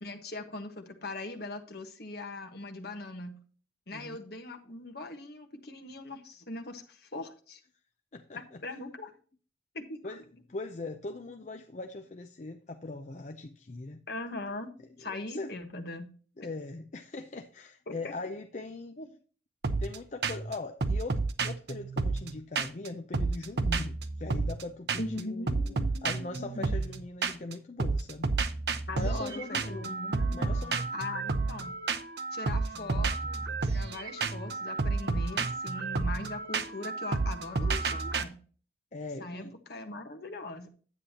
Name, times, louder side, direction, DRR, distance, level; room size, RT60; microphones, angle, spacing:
voice 1, 0.0-3.4 3.9-7.6 8.3-9.1 9.7-10.0 14.1-14.7 15.0-16.1 18.0-18.1 19.0-19.1 25.0-26.7 28.9-30.6 30.9-31.8 32.3-38.4 39.2-40.7, left 2 dB, 60° left, 1.4 m, -40 dB
voice 2, 8.1-8.6 10.0-10.2 10.5-14.0 15.0-15.5 16.4-19.0 19.8-25.7 26.0-28.3 28.9-29.9 30.3-30.9 38.9-39.6, left 3 dB, 40° left, 0.5 m, -40 dB
sound 1, 19.6-20.0 20.2-20.5 20.8-22.9 23.1-24.6 24.9-25.2 25.5-27.5 27.8-38.2, right 3 dB, 60° right, 0.8 m, -31 dB
9.9 x 8.6 x 2.9 m
head